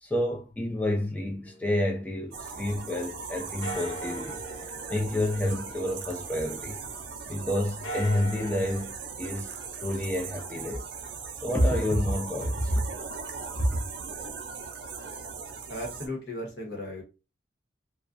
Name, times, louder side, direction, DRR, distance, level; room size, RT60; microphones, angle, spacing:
voice 1, 0.0-4.4 4.9-6.8 7.3-9.5 9.8-10.8 11.4-12.8 13.7-13.8, left 1 dB, 10° left, 0.5 m, -29 dB
sound 1, 1.5-3.2 3.6-7.1 7.6-8.9, right 1 dB, 80° left, 0.6 m, -42 dB
sound 2, 2.3-16.1, right 5 dB, 75° right, 0.4 m, -39 dB
voice 2, 15.7-17.0, left 1 dB, 60° left, 1.0 m, -36 dB
2.4 x 2.1 x 2.4 m
head